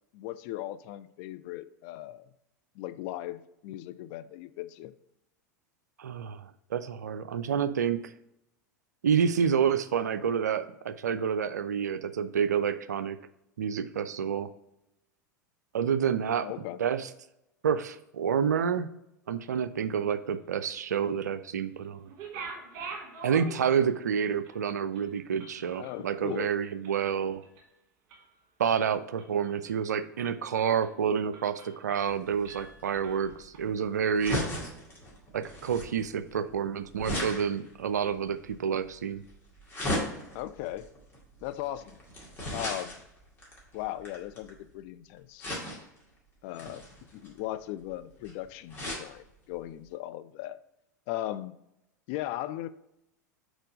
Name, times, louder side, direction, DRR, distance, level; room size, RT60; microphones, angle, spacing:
voice 1, 0.1-2.3 2.8-4.9 16.4-16.8 25.8-26.5 40.3-40.9 41.4-42.0 42.5-43.0 43.7-45.5 46.4-46.8 47.1-50.6 51.1-51.5 52.1-52.7, left 14 dB, 40° left, 13 dB, 0.3 m, -38 dB
voice 2, 6.0-6.4 6.7-8.1 9.0-13.2 13.6-14.5 15.7-16.5 16.8-17.1 17.6-18.9 19.3-22.1 23.2-27.4 28.6-34.4 35.3-39.2, right 7 dB, 70° right, 12 dB, 0.4 m, -28 dB
sound 1, 22.1-24.1 24.5-24.6 24.9-27.1 27.4-27.7 28.1-28.7 29.2-29.9 30.3-30.4 30.8-31.0 31.3-32.2 32.4-33.6, right 4 dB, 45° right, 1.6 m, -45 dB
sound 2, 32.1-44.7 45.4-46.0 46.5-49.1 49.6-49.7 49.9-50.0, left 1 dB, 20° left, 2.1 m, -37 dB
4.5 x 4.4 x 5.0 m, 0.84 s
figure-of-eight pair, 85°, 10 cm